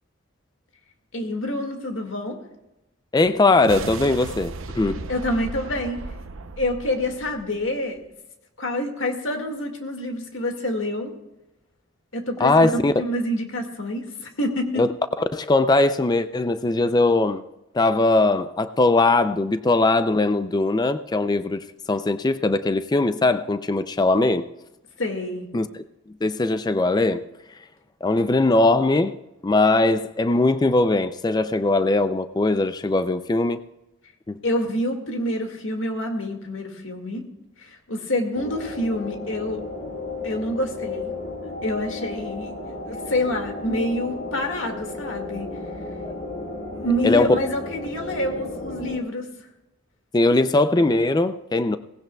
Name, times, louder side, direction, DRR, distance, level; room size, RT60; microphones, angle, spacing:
voice 1, 1.1-2.4 5.1-6.0 6.6-8.0 8.6-11.1 12.1-14.8 25.0-25.5 34.4-37.2 37.6-39.6 40.2-41.1 41.6-42.5 42.9-45.5 46.7-49.5, left 1 dB, 70° left, 2.0 m, -27 dB
voice 2, 3.1-5.1 12.4-12.9 14.8-14.9 15.3-17.4 17.7-24.5 25.5-25.8 26.2-27.2 28.0-29.2 29.4-33.6 34.3-34.4 46.0-46.1 47.0-47.4 50.1-51.8, left 2 dB, 20° left, 0.4 m, -20 dB
sound 1, 3.5-8.0, right 3 dB, 85° right, 0.7 m, -36 dB
sound 2, 38.3-49.0, left 2 dB, 55° left, 2.0 m, -34 dB
18.0 x 16.5 x 2.3 m
head